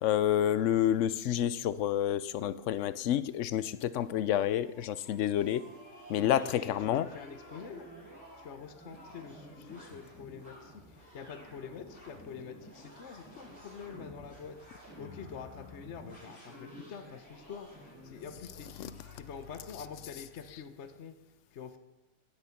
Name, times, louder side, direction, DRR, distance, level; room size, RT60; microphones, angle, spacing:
voice 1, 0.0-5.6 6.1-7.1 18.6-18.9 19.7-19.8 20.1-20.2 20.5-20.6, left 11 dB, 65° left, 16 dB, 0.7 m, -29 dB
sound 1, 3.2-20.3, equal, 10° right, 6.5 m, -52 dB
voice 2, 6.2-7.9 8.4-10.8 11.1-14.6 15.0-17.7 18.0-21.1 21.5-21.8, left 6 dB, 50° left, 8 dB, 1.0 m, -46 dB
16.5 x 10.0 x 5.8 m, 1.0 s
omnidirectional pair, 1.8 m